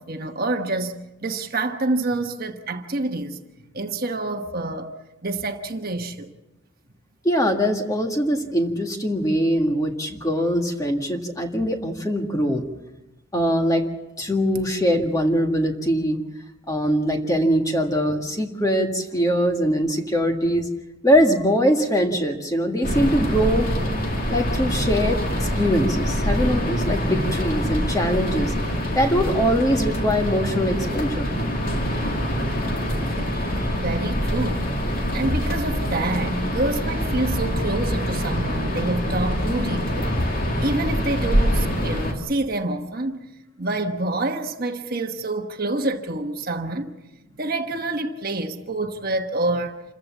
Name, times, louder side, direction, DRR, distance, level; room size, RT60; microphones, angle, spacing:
voice 1, 0.0-3.4 3.7-4.9 5.2-6.3 33.7-34.7 35.1-40.2 40.6-43.2 43.6-46.9 47.4-49.8, right 2 dB, 45° right, 1.2 m, -27 dB
voice 2, 7.2-12.7 13.3-13.9 14.2-16.2 16.7-20.7 21.0-23.7 24.3-28.5 28.9-31.3 31.9-32.0, equal, 15° left, 1.8 m, -22 dB
sound 1, 22.8-42.1, equal, 40° left, 2.7 m, -25 dB
27.5 x 15.0 x 7.3 m
head